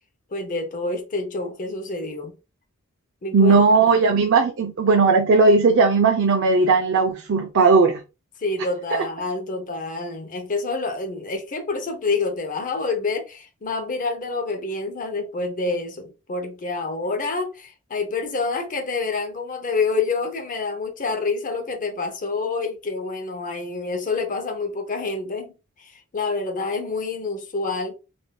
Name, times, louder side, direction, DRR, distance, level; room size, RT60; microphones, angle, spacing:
voice 1, 0.3-2.3 3.2-3.6 3.9-4.0 8.4-27.9, left 3 dB, 40° left, 0.7 m, -27 dB
voice 2, 3.3-8.0, right 4 dB, 55° right, 0.5 m, -17 dB
3.5 x 2.5 x 2.2 m
head